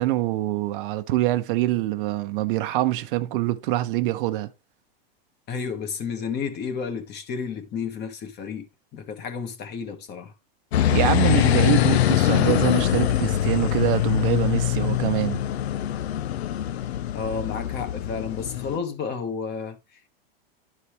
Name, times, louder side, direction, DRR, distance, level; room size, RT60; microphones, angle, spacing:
voice 1, 0.0-4.5 10.9-15.4, right 16 dB, 60° right, 0.8 m, -25 dB
voice 2, 5.5-8.7 8.9-10.3 17.1-20.1, left 6 dB, 35° left, 1.6 m, -31 dB
sound 1, 10.7-18.8, left 12 dB, 85° left, 0.6 m, -23 dB
11.5 x 4.2 x 3.2 m
supercardioid pair, 130°, 31 cm